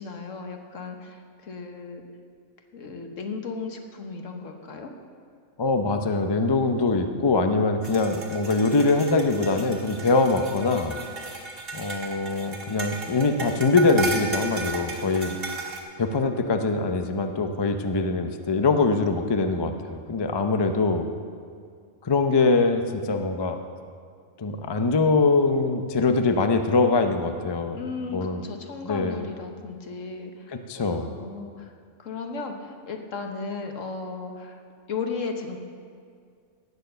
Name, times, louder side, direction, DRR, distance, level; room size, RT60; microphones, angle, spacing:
voice 1, 0.0-2.0 2.7-4.9 27.7-30.6 30.9-31.7 32.0-34.6 34.9-35.6, left 4 dB, 65° left, 4 dB, 1.5 m, -35 dB
voice 2, 5.6-10.9 11.7-15.4 16.0-21.1 22.0-23.6 24.4-27.8 28.1-28.4 28.8-29.3 30.5-31.1, left 3 dB, 35° left, 6 dB, 0.4 m, -23 dB
sound 1, 7.8-15.8, right 3 dB, 45° right, 1.7 m, -35 dB
17.5 x 6.8 x 6.8 m, 2.2 s
omnidirectional pair, 1.4 m